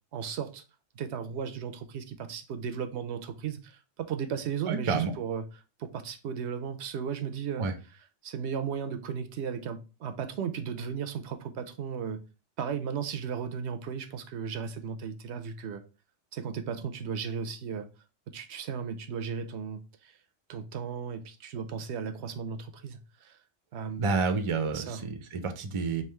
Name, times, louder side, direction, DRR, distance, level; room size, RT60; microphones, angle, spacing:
voice 1, 0.1-0.6 1.0-5.4 5.8-7.6 8.2-12.2 12.6-15.8 16.3-17.9 18.3-20.1 20.5-23.4 23.7-24.0 24.7-25.1, right 7 dB, 75° right, 0.8 m, -35 dB
voice 2, 4.7-5.1 7.6-7.7 24.0-26.0, right 4 dB, 35° right, 0.5 m, -29 dB
3.5 x 2.7 x 4.3 m
omnidirectional pair, 1.2 m